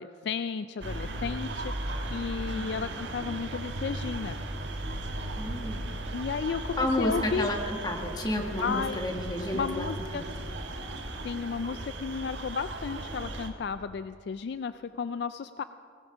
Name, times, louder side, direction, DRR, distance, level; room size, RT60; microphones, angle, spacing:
voice 1, 0.0-4.4 6.1-7.5 8.6-9.0 9.5-10.2 11.2-15.6, left 5 dB, 60° left, 12 dB, 0.3 m, -33 dB
sound 1, 0.8-13.5, right 1 dB, 75° right, 1.5 m, -36 dB
voice 2, 2.5-2.9 5.4-5.9 6.8-9.9 10.1-10.2, left 1 dB, 20° left, 3 dB, 1.5 m, -31 dB
18.5 x 15.5 x 5.0 m, 2.3 s
head